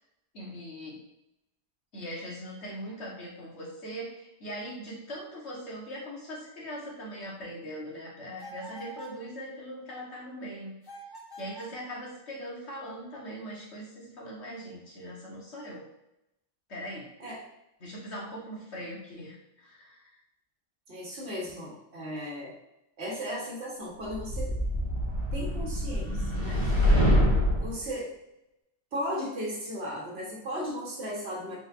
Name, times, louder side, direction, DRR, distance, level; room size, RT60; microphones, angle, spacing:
voice 1, 0.3-1.0 1.9-10.7 11.4-15.8 16.7-17.1 17.8-20.1 26.8-27.0, equal, 80° left, -4 dB, 1.6 m, -41 dB
sound 1, 8.4-9.2 10.8-11.8, right 2 dB, 25° left, 0.6 m, -45 dB
voice 2, 20.9-22.6 23.0-24.6 25.3-26.8 27.5-28.2 28.9-31.6, equal, 70° right, -4 dB, 1.5 m, -36 dB
sound 2, 24.1-27.8, equal, 25° right, 1.5 m, -25 dB
4.0 x 3.9 x 2.5 m, 0.86 s
omnidirectional pair, 1.1 m